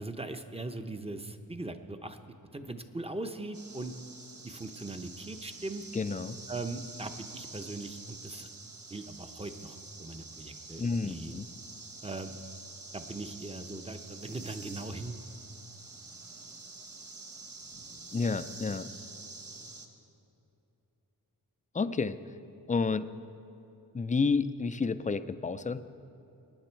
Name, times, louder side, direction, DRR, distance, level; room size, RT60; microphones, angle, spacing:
voice 1, 0.0-2.2 2.5-3.9 4.4-5.8 6.5-8.5 8.9-11.3 12.0-12.4 12.9-15.3, right 2 dB, 15° right, 7 dB, 0.7 m, -40 dB
sound 1, 3.5-19.9, right 3 dB, 40° right, 1.4 m, -47 dB
voice 2, 5.9-6.4 10.8-11.5 18.1-18.9 21.7-22.2 22.7-23.1 23.9-25.8, left 4 dB, 20° left, 12 dB, 0.4 m, -30 dB
23.0 x 9.9 x 4.5 m, 2.9 s
wide cardioid pair, 125°, 38 cm